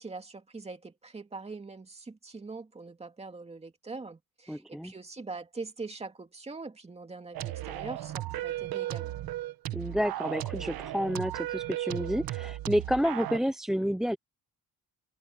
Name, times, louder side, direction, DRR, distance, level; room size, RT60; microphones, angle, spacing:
voice 1, 0.0-9.2, right 3 dB, 15° right, 2.5 m, -42 dB
voice 2, 4.5-4.9 9.7-14.2, equal, ahead, 0.6 m, -30 dB
sound 1, 7.3-13.4, right 15 dB, 85° right, 1.4 m, -35 dB
cardioid pair, 155°, 35 cm